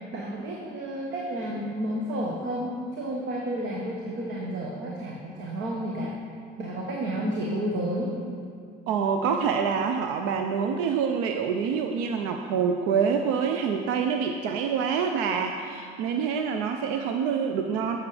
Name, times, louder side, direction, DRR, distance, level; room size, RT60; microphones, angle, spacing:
voice 1, 0.1-6.1 6.6-8.1, right 1 dB, 60° right, -2 dB, 1.2 m, -31 dB
voice 2, 8.9-18.0, right 6 dB, 80° right, 5 dB, 0.6 m, -26 dB
8.3 x 7.3 x 4.9 m, 2.3 s
supercardioid pair, 100°, 20 cm